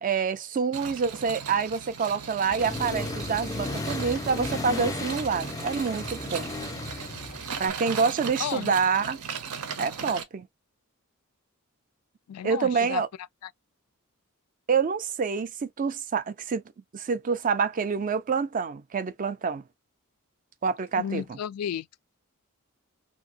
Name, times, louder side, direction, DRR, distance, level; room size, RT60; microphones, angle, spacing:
voice 1, 0.0-6.5 7.6-9.2 9.8-10.5 12.4-13.1 14.7-16.6 16.9-19.6 20.6-21.2, right 5 dB, 40° right, 0.4 m, -27 dB
sound 1, 0.7-10.2, right 6 dB, 85° right, 0.6 m, -38 dB
Accelerating revving vroom, 2.5-7.7, left 2 dB, 15° left, 0.5 m, -34 dB
voice 2, 8.4-8.7 12.3-13.0 13.4-13.5 21.0-21.9, left 9 dB, 85° left, 0.3 m, -33 dB
2.7 x 2.6 x 2.7 m
head